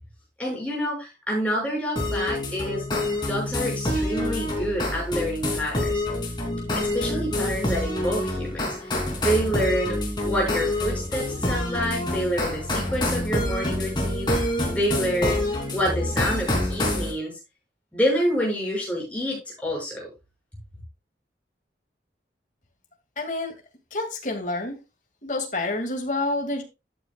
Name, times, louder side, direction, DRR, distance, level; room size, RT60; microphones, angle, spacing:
voice 1, 0.4-2.8 3.2-6.0 6.7-10.0 10.2-15.4 15.7-17.3 17.9-20.1, equal, 5° left, -3 dB, 6.4 m, -28 dB
sound 1, 2.0-17.1, left 1 dB, 25° left, 3.0 m, -27 dB
voice 2, 23.2-23.5 23.9-24.8 25.2-26.6, left 2 dB, 40° left, 3 dB, 2.3 m, -28 dB
13.5 x 8.8 x 2.4 m, 0.26 s
head